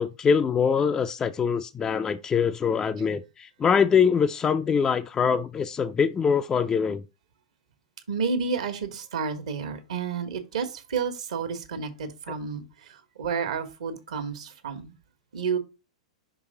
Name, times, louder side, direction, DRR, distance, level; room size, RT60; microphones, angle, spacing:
voice 1, 0.0-7.0, left 6 dB, 20° left, 0.3 m, -23 dB
voice 2, 8.1-12.6 13.2-14.9 15.3-15.6, right 5 dB, 70° right, 1.3 m, -30 dB
6.0 x 3.4 x 5.1 m
hypercardioid pair, 105°, 4 cm